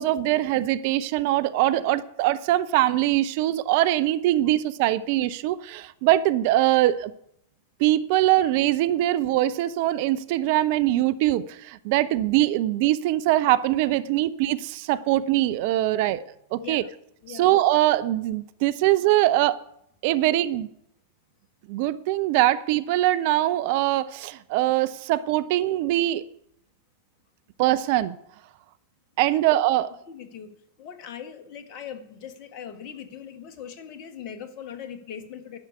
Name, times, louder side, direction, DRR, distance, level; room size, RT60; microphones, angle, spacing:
voice 1, 0.0-7.1 7.8-16.2 16.5-16.8 17.3-19.6 20.0-20.7 21.7-26.2 27.6-28.2 29.2-29.9, right 14 dB, 50° right, 0.6 m, -22 dB
voice 2, 16.6-16.9 17.2-17.5 29.3-29.4 30.1-30.5 30.8-35.6, left 8 dB, 40° left, 1.6 m, -40 dB
11.5 x 7.2 x 9.3 m
figure-of-eight pair, 90°, 0 cm